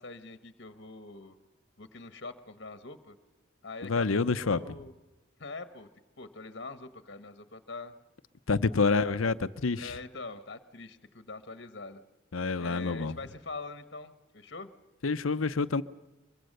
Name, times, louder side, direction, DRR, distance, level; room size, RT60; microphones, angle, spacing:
voice 1, 0.0-1.4 1.8-3.1 3.6-4.9 5.4-5.9 6.2-7.9 8.8-9.2 9.8-12.0 12.6-14.7, left 3 dB, 55° left, 11 dB, 1.3 m, -43 dB
voice 2, 3.8-4.6 8.5-9.9 12.3-13.2 15.0-15.8, left 4 dB, 90° left, 14 dB, 0.8 m, -27 dB
23.5 x 23.0 x 6.7 m, 1.1 s
head